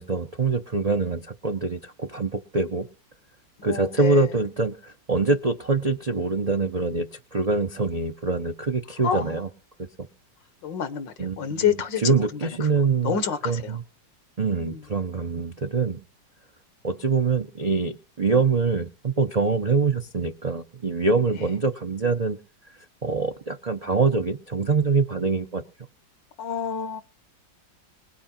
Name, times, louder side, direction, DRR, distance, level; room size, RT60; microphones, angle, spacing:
voice 1, 0.0-2.9 3.6-9.5 9.8-10.1 11.2-11.6 12.0-13.2 13.4-13.8 14.4-16.0 16.8-22.4 23.0-25.6, right 4 dB, 90° right, 6 dB, 0.3 m, -24 dB
voice 2, 3.6-4.3 9.0-9.4 10.6-12.3 12.6-12.7 13.0-13.8 14.7-14.8 26.4-27.0, left 7 dB, 80° left, 12 dB, 1.9 m, -28 dB
20.5 x 8.4 x 4.3 m, 0.35 s
omnidirectional pair, 2.0 m